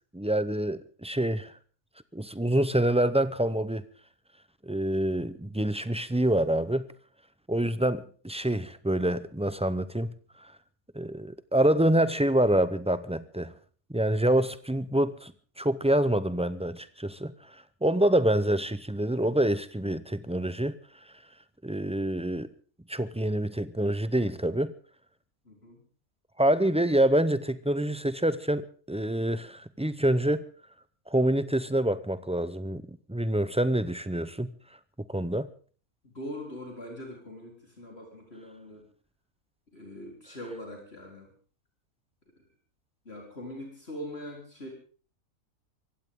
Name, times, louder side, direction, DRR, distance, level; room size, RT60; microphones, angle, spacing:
voice 1, 0.1-1.5 2.1-3.8 4.6-6.9 7.5-10.1 10.4-10.5 10.9-13.5 13.9-20.8 21.6-22.5 22.9-24.7 26.4-30.4 31.1-32.8 33.1-34.5 35.1-35.5, right 1 dB, 10° right, 13 dB, 0.3 m, -26 dB
voice 2, 25.4-25.8 36.0-38.8 39.7-41.3 43.1-44.7, equal, 45° left, 0 dB, 4.3 m, -42 dB
24.0 x 16.0 x 3.8 m, 0.41 s
omnidirectional pair, 1.5 m